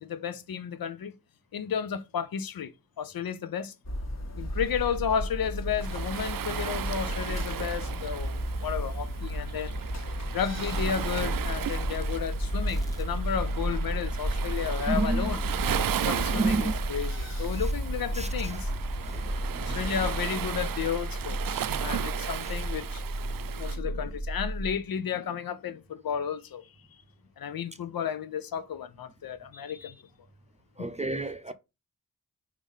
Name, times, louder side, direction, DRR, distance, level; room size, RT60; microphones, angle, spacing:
voice 1, 0.0-1.1 1.5-3.7 4.4-9.7 10.3-15.4 16.1-18.7 19.6-26.7 27.4-30.0 30.8-30.9, left 8 dB, 90° left, 0.6 m, -33 dB
sound 1, 3.8-20.2, equal, 50° left, 1.5 m, -34 dB
Waves surf, 5.8-23.8, right 10 dB, 75° right, 0.5 m, -36 dB
sound 2, 10.6-24.8, right 1 dB, 10° left, 0.9 m, -34 dB
voice 2, 14.9-15.4 16.3-16.7 17.5-17.7 18.1-18.6 19.0-19.9 22.4-22.5 30.8-31.5, right 3 dB, 20° right, 0.5 m, -32 dB
4.9 x 3.6 x 5.4 m
wide cardioid pair, 70°, 34 cm